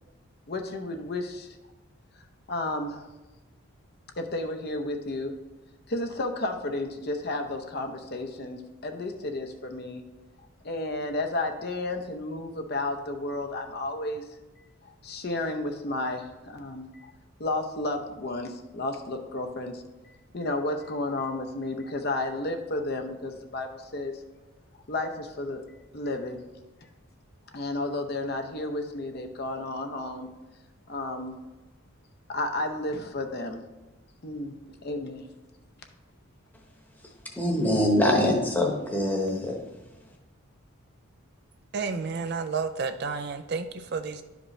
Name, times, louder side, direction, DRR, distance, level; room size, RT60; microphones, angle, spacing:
voice 1, 0.5-1.6 2.5-3.1 4.2-5.3 5.9-10.0 10.6-14.2 14.8-17.1 17.4-24.1 24.9-25.6 25.9-26.4 27.5-30.3 30.9-31.3 32.3-33.6 34.2-34.6 34.8-35.3, left 2 dB, 45° left, 5 dB, 0.7 m, -32 dB
voice 2, 37.4-39.6, left 1 dB, 10° left, 0 dB, 1.0 m, -24 dB
voice 3, 41.7-44.2, right 5 dB, 50° right, 8 dB, 0.4 m, -31 dB
11.0 x 5.1 x 3.2 m, 1.1 s
head